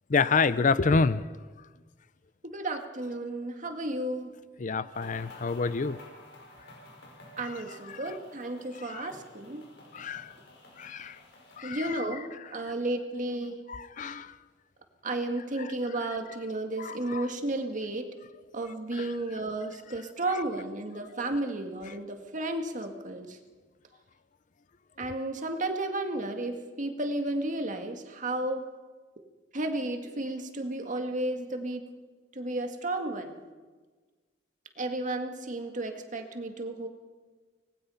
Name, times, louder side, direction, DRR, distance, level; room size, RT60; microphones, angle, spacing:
voice 1, 0.1-1.2 4.6-6.0 7.9-8.0 8.8-9.1 9.9-10.3 10.8-11.2 11.6-12.0 13.7-14.3 16.8-17.3 19.0-19.1, left 4 dB, 45° left, 15 dB, 0.6 m, -28 dB
voice 2, 2.5-4.3 7.4-9.6 11.6-13.6 15.0-18.1 18.5-23.4 25.0-28.6 29.5-31.9 32.3-33.4 34.8-36.9, right 2 dB, 45° right, 5 dB, 2.0 m, -33 dB
sound 1, 4.9-11.9, left 1 dB, 65° left, 5.7 m, -51 dB
25.0 x 19.5 x 5.7 m, 1.4 s
head